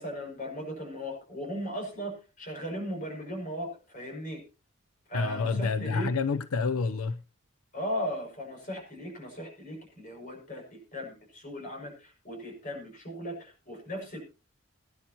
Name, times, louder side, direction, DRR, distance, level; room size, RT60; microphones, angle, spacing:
voice 1, 0.0-4.4 5.1-6.1 7.7-14.2, equal, 40° left, 6.4 m, -37 dB
voice 2, 5.1-7.2, left 4 dB, 85° left, 0.6 m, -28 dB
22.0 x 10.5 x 2.9 m
head